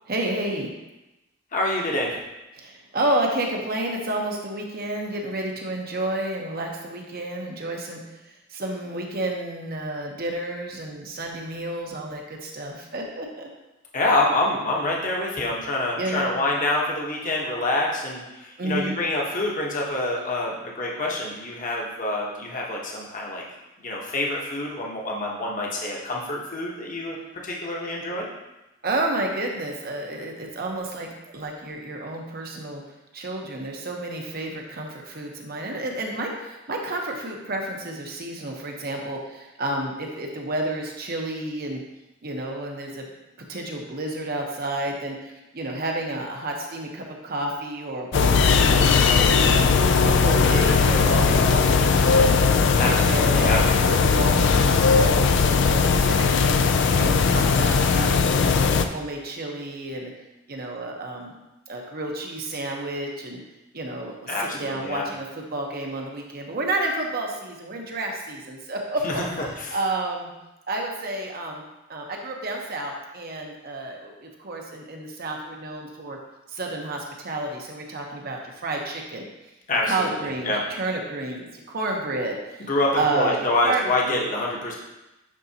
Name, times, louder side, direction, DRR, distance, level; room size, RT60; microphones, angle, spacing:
voice 1, 0.1-0.7 2.5-8.0 8.2-13.5 16.0-16.4 18.6-19.0 28.8-32.8 33.1-41.8 42.2-43.1 43.4-56.5 56.9-58.2 58.5-60.1 60.5-61.3 61.7-63.4 63.7-69.2 69.7-70.3 70.7-76.2 76.5-79.2 79.8-83.8 84.1-84.2, right 2 dB, 50° right, 1 dB, 1.0 m, -30 dB
voice 2, 1.5-2.2 13.9-23.4 23.8-27.2 27.4-28.2 52.8-53.6 64.3-65.1 69.0-69.2 69.7-69.8 79.7-80.6 82.7-84.7, left 2 dB, 40° left, -2 dB, 1.1 m, -26 dB
sound 1, 48.1-58.9, left 5 dB, 65° left, 0.4 m, -19 dB
9.9 x 4.0 x 2.8 m, 0.99 s
head